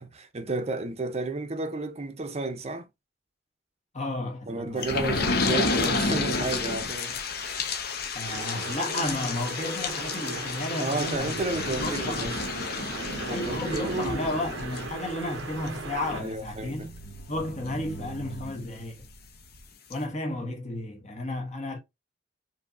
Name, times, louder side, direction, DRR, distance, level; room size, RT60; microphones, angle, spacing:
voice 1, 0.0-2.9 4.5-7.2 10.8-12.3 12.9-14.3 16.1-16.9, right 2 dB, 35° right, 0.7 m, -32 dB
voice 2, 3.9-5.1 8.1-11.4 11.7-12.3 13.3-17.0 17.3-19.0 19.9-21.8, left 1 dB, 40° left, 1.3 m, -33 dB
sound 1, 4.8-19.1 19.6-19.7 19.9-20.0, left 3 dB, 55° left, 0.8 m, -32 dB
sound 2, 8.3-16.2, right 3 dB, 75° right, 0.7 m, -38 dB
4.8 x 2.8 x 2.6 m
head